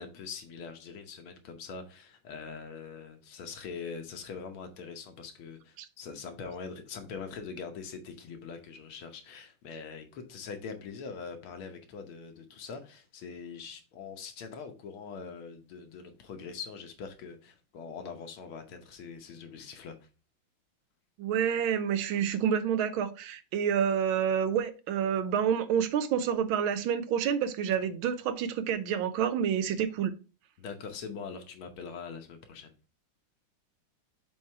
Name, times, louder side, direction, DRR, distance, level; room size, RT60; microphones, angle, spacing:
voice 1, 0.0-20.0 30.6-32.7, left 5 dB, 90° left, 1.9 m, -43 dB
voice 2, 21.2-30.1, right 8 dB, 80° right, 1.5 m, -28 dB
7.2 x 3.2 x 4.6 m
omnidirectional pair, 2.2 m